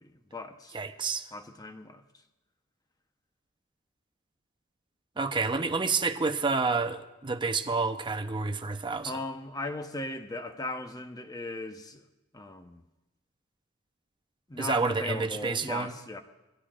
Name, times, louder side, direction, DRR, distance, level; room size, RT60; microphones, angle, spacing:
voice 1, 0.0-0.8 1.3-2.0 9.0-12.0 12.3-12.8 14.5-16.2, left 2 dB, 20° left, 0.9 m, -38 dB
voice 2, 0.7-1.3 5.2-9.1 14.6-15.9, right 4 dB, 25° right, 0.8 m, -29 dB
23.5 x 16.5 x 2.5 m
head